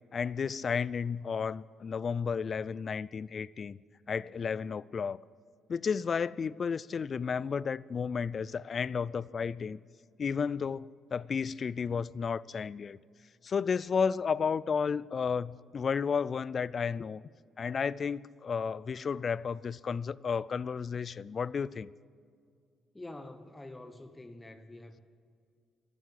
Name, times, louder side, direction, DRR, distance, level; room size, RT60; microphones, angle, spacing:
voice 1, 0.1-3.8 4.1-5.2 5.7-9.8 10.2-13.0 13.4-17.2 17.6-21.9, left 6 dB, 45° left, 0.4 m, -32 dB
voice 2, 22.9-25.0, left 2 dB, 15° left, 1.0 m, -47 dB
14.0 x 12.5 x 7.7 m
cardioid pair, 90°, 0 cm